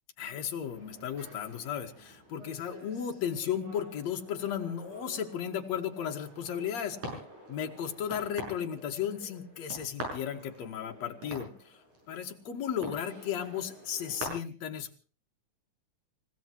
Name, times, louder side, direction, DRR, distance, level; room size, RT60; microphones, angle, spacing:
voice 1, 0.2-7.0 7.5-11.8 12.1-15.0, left 9 dB, 65° left, 4 dB, 2.9 m, -35 dB
sound 1, 0.6-14.2, right 1 dB, 80° right, 8.2 m, -47 dB
29.5 x 16.5 x 3.0 m, 0.37 s
omnidirectional pair, 3.4 m